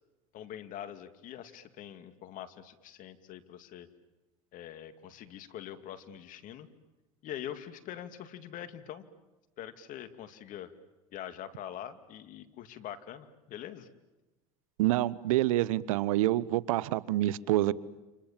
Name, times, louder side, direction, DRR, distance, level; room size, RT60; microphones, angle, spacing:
voice 1, 0.3-3.9 4.5-6.7 7.2-9.0 9.6-10.7 11.1-13.9, left 10 dB, 50° left, 2.3 m, -44 dB
voice 2, 14.8-17.7, right 15 dB, 80° right, 0.9 m, -27 dB
29.5 x 27.5 x 7.4 m
supercardioid pair, 105°, 17 cm